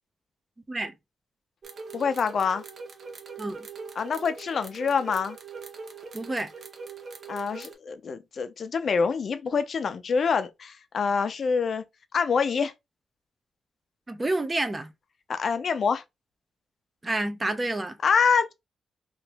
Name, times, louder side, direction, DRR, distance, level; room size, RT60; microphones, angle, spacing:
sound 1, 1.6-7.7, right 5 dB, 55° right, 0.8 m, -42 dB
voice 1, 1.9-2.6 4.0-5.4 7.3-11.8 12.1-12.7 15.3-16.0 18.0-18.5, left 5 dB, 60° left, 0.5 m, -26 dB
voice 2, 6.1-6.5 14.1-14.9 17.0-18.0, right 2 dB, 25° right, 0.6 m, -29 dB
2.9 x 2.5 x 3.3 m
cardioid pair, 95°, 0 cm